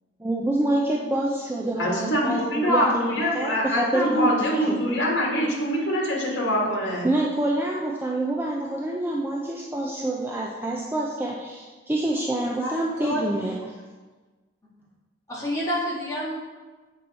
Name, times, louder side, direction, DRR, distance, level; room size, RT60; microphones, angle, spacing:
voice 1, 0.2-4.9 7.0-13.8, right 1 dB, 10° right, -3 dB, 0.5 m, -27 dB
voice 2, 1.8-7.1, equal, 60° left, -3 dB, 1.6 m, -24 dB
voice 3, 15.3-16.4, equal, 15° left, -7 dB, 1.8 m, -28 dB
7.7 x 4.6 x 4.0 m, 1.3 s
head